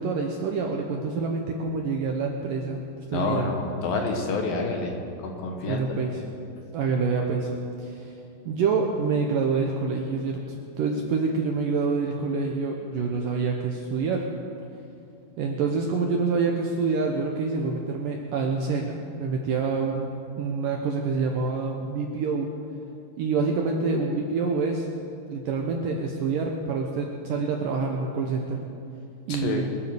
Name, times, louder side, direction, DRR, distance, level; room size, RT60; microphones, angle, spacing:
voice 1, 0.0-2.8 3.1-3.5 5.7-6.2 6.7-7.5 7.8-8.1 8.5-14.3 15.4-22.5 23.2-24.9 25.3-28.6 29.3-29.7, right 4 dB, 75° right, 1 dB, 2.1 m, -27 dB
voice 2, 3.1-5.8 29.3-29.7, left 3 dB, 65° left, 2 dB, 2.7 m, -28 dB
24.0 x 8.1 x 6.9 m, 2.6 s
omnidirectional pair, 4.9 m